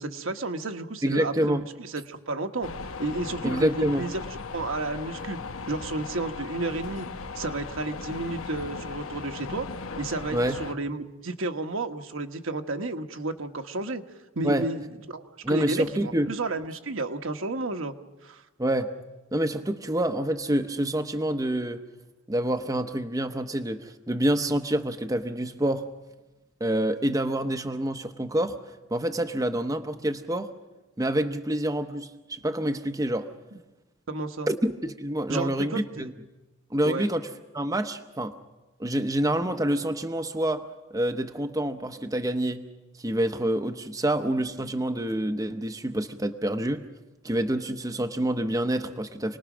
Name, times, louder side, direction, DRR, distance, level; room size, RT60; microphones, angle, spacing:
voice 1, 0.0-2.7 3.0-4.2 4.5-5.4 5.7-7.1 7.3-9.7 10.0-14.0 14.3-17.9 18.2-18.4 34.1-34.5 35.3-36.1 36.8-37.1, right 2 dB, 65° right, 6 dB, 1.3 m, -32 dB
voice 2, 1.0-1.6 3.4-4.1 10.3-10.6 14.4-14.6 15.4-16.3 18.6-18.9 19.3-21.8 22.3-25.9 26.6-28.6 28.9-30.5 31.0-33.3 34.5-36.1 36.7-37.3 37.5-38.4 38.8-40.7 40.9-42.6 43.0-46.9 47.2-49.4, right 1 dB, 15° right, 7 dB, 0.8 m, -27 dB
sound 1, 2.6-10.7, left 4 dB, 70° left, 0.9 m, -37 dB
28.5 x 20.0 x 6.1 m, 1.1 s
head